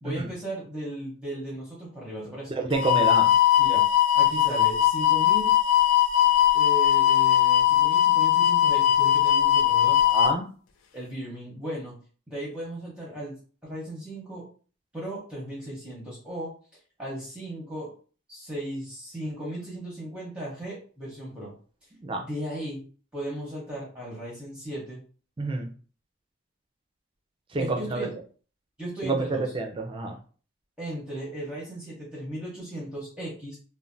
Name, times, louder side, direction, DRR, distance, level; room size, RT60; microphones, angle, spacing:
voice 1, 0.0-2.6 3.6-3.8 4.1-5.5 6.5-10.0 10.9-12.0 12.3-13.4 13.6-14.4 14.9-16.5 17.0-17.9 18.3-21.5 22.2-22.8 23.1-25.0 27.6-28.2 28.8-29.4 30.8-33.6, right 1 dB, 5° right, -6 dB, 0.8 m, -36 dB
voice 2, 2.6-3.3 10.1-10.5 22.0-22.2 25.4-25.7 27.5-28.1 29.0-29.3 29.5-30.2, right 3 dB, 25° right, 3 dB, 0.4 m, -28 dB
sound 1, 2.7-10.3, left 11 dB, 75° left, 0.4 m, -20 dB
3.1 x 2.1 x 2.5 m, 0.40 s
head